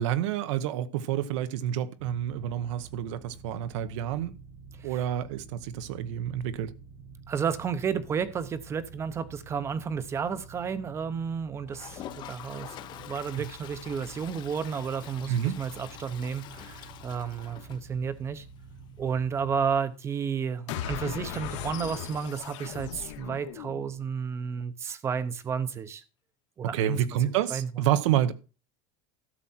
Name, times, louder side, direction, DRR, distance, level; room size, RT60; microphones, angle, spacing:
voice 1, 0.0-4.3 4.8-6.7 15.3-15.6 26.7-28.3, right 11 dB, 75° right, 1.0 m, -28 dB
sound 1, 2.0-19.8, right 4 dB, 50° right, 1.4 m, -49 dB
voice 2, 7.3-18.4 19.0-26.0 26.6-27.7, right 6 dB, 15° right, 0.7 m, -32 dB
Toilet flush, 11.7-18.4 18.7-18.8 19.0-19.1 19.4-19.5 22.0-22.1 23.4-23.5, left 12 dB, 30° left, 0.6 m, -46 dB
sound 2, 20.7-24.0, left 10 dB, 75° left, 1.9 m, -38 dB
13.0 x 7.5 x 4.3 m
cardioid pair, 175°, 16 cm